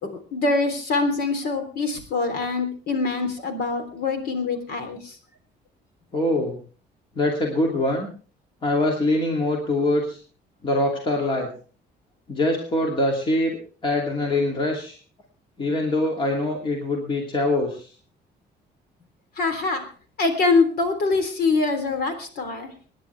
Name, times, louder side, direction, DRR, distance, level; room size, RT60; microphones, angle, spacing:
voice 1, 0.0-5.2 19.4-19.8 20.2-22.9, left 3 dB, 60° left, 7 dB, 3.5 m, -24 dB
voice 2, 6.1-6.6 7.2-8.1 8.6-10.2 10.6-11.5 12.3-15.0 15.6-17.9, left 1 dB, 30° left, 0 dB, 2.7 m, -23 dB
26.5 x 10.5 x 3.4 m, 0.40 s
cardioid pair, 175°, 18 cm